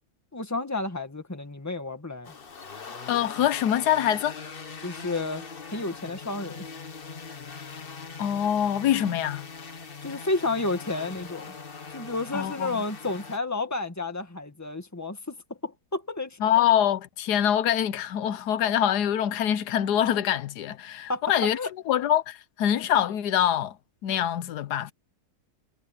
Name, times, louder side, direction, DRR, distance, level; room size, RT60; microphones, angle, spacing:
voice 1, 0.3-2.3 4.8-5.4 5.7-6.6 10.0-11.5 11.9-15.4 15.6-16.4 21.1-21.2 21.5-21.7, left 2 dB, 10° left, 1.9 m, -31 dB
sound 1, 2.2-13.4, left 5 dB, 35° left, 1.3 m, -41 dB
voice 2, 3.1-4.4 8.2-9.4 12.3-12.8 16.4-21.6 21.9-23.8 24.0-24.9, left 10 dB, 85° left, 1.4 m, -24 dB
omnidirectional pair, 1.7 m